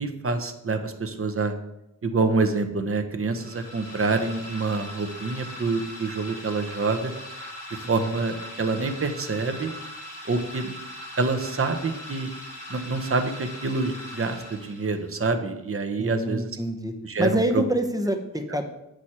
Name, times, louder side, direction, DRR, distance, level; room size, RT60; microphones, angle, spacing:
voice 1, 0.0-1.5 2.0-7.1 7.7-9.7 10.3-10.7 11.2-12.3 12.7-16.5 17.0-17.6, right 3 dB, 45° right, 5 dB, 0.9 m, -26 dB
sound 1, 3.3-15.1, left 1 dB, 75° left, 2.7 m, -40 dB
voice 2, 7.8-8.1 16.0-16.9 17.2-18.6, right 1 dB, 10° right, 4 dB, 0.9 m, -27 dB
8.0 x 6.3 x 4.3 m, 0.86 s
wide cardioid pair, 95°, 32 cm